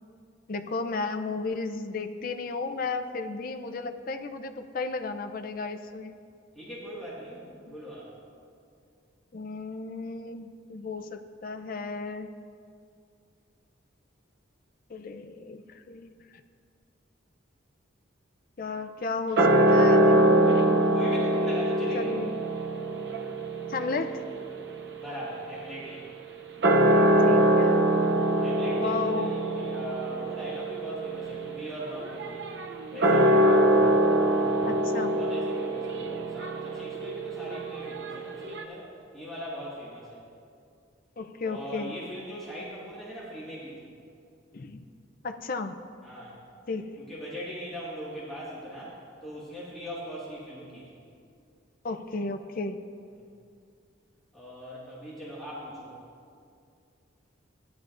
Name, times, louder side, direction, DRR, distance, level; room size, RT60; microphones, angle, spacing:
voice 1, 0.5-6.2 7.6-7.8 9.3-12.3 14.9-16.1 18.6-21.3 21.9-22.3 23.7-24.2 27.2-27.9 28.8-29.3 33.8-34.0 34.6-35.1 41.2-41.9 44.5-44.9 45.2-45.8 46.7-46.9 51.8-52.8, left 3 dB, 45° left, 7 dB, 0.5 m, -34 dB
voice 2, 6.5-8.1 20.9-22.2 25.0-26.1 28.4-32.4 32.9-33.6 34.2-40.2 41.4-43.9 46.0-46.3 47.0-51.0 53.2-53.3 54.3-56.0, equal, ahead, -10 dB, 1.8 m, -40 dB
sound 1, 19.4-26.0 26.5-38.6, right 1 dB, 55° right, 0.6 m, -24 dB
15.5 x 10.5 x 2.5 m, 2.4 s
head